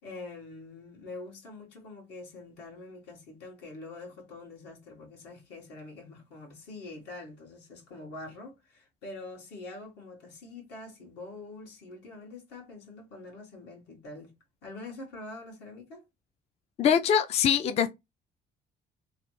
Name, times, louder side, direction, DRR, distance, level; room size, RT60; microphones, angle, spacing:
voice 1, 0.0-14.3 14.6-16.0, left 2 dB, 80° left, 1.6 m, -45 dB
voice 2, 16.8-17.9, left 8 dB, 40° left, 0.3 m, -23 dB
3.1 x 2.1 x 3.0 m
cardioid pair, 110°, 17 cm